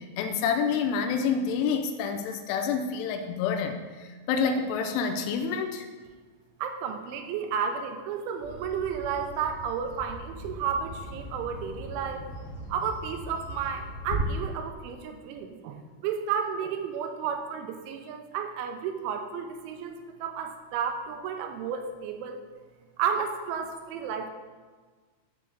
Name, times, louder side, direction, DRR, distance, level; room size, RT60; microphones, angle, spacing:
voice 1, 0.0-5.9, left 6 dB, 85° left, 4 dB, 2.5 m, -28 dB
voice 2, 6.6-12.3 12.7-22.4 23.0-24.3, right 7 dB, 85° right, 6 dB, 3.1 m, -32 dB
Bird vocalization bird call bird song, 8.4-14.2, equal, 60° left, 3.3 m, -41 dB
7.8 x 6.5 x 3.9 m, 1.4 s
omnidirectional pair, 5.5 m